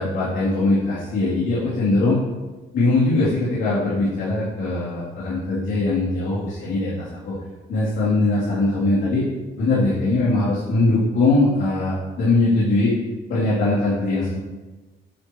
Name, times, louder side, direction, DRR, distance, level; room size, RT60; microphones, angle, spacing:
voice 1, 0.0-2.2 2.7-7.3 7.7-9.2 9.6-12.9 13.3-14.4, left 2 dB, 80° left, -11 dB, 2.9 m, -21 dB
9.6 x 8.0 x 3.0 m, 1.2 s
cardioid pair, 90°, 20 cm